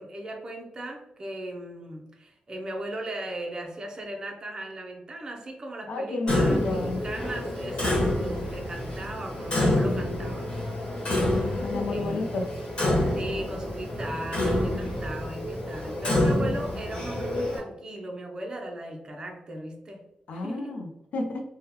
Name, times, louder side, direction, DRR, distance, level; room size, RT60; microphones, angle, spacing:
voice 1, 0.0-10.5 11.9-12.2 13.1-20.0 20.3-20.8, right 1 dB, 30° right, 1 dB, 0.5 m, -37 dB
voice 2, 5.9-7.0 11.3-12.5 20.3-21.4, left 2 dB, 75° left, 2 dB, 0.4 m, -32 dB
Clock, 6.3-17.6, left 1 dB, 45° left, 1.2 m, -28 dB
3.6 x 2.1 x 2.8 m, 0.85 s
wide cardioid pair, 180°, 3 cm